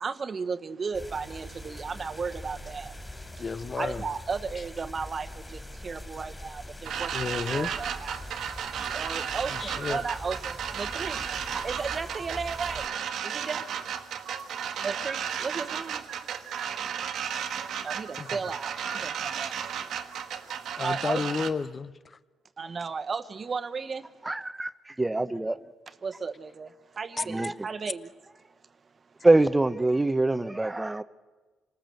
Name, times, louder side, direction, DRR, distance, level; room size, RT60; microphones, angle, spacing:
voice 1, 0.0-2.9 3.8-5.3 5.5-7.1 7.5-8.2 8.9-11.2 11.5-12.8 13.2-13.6 14.8-16.0 17.8-18.7 19.0-19.5 20.8-21.2 22.6-24.1 26.0-26.7 27.0-28.1, right 5 dB, 40° right, 11 dB, 1.2 m, -34 dB
sound 1, 0.9-12.9, left 1 dB, 10° left, 3.3 m, -43 dB
voice 2, 3.4-4.0 7.1-7.7 9.0-9.2 9.6-10.0 18.2-18.3 20.8-21.9, left 5 dB, 35° left, 16 dB, 0.8 m, -31 dB
sound 2, 6.9-21.5, right 8 dB, 70° right, 1.5 m, -34 dB
voice 3, 24.3-25.6 27.3-27.5 29.2-31.0, right 2 dB, 15° right, 13 dB, 0.9 m, -24 dB
26.5 x 19.0 x 7.8 m, 1.3 s
cardioid pair, 90°, 0 cm